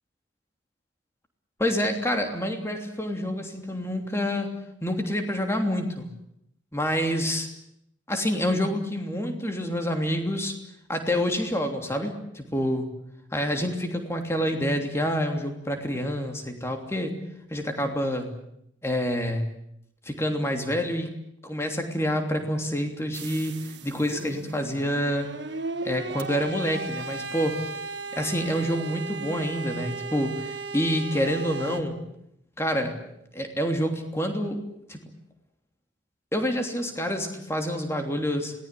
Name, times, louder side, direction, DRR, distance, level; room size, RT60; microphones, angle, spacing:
voice 1, 1.6-4.5 4.8-6.1 6.7-7.5 8.1-10.5 10.9-12.9 13.3-17.1 17.5-18.3 18.8-19.4 20.0-21.1 21.4-25.3 25.8-27.6 28.1-32.0 32.6-32.9 33.3-34.6 34.9-35.0 36.3-38.5, equal, 15° left, 4 dB, 3.0 m, -27 dB
sound 1, 23.1-31.8, right 3 dB, 65° right, 1.8 m, -36 dB
26.5 x 19.0 x 8.5 m, 0.77 s
head